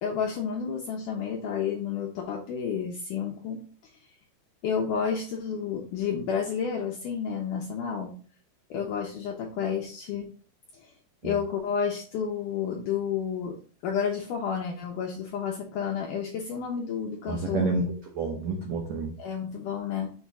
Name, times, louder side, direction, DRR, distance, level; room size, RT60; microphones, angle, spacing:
voice 1, 0.0-3.7 4.6-8.1 8.7-10.3 10.8-10.9 11.2-13.6 13.8-17.7 19.2-20.1, left 7 dB, 80° left, 0 dB, 1.9 m, -30 dB
voice 2, 17.3-19.1, right 3 dB, 80° right, 0 dB, 1.6 m, -29 dB
6.5 x 3.5 x 4.1 m, 0.41 s
omnidirectional pair, 4.5 m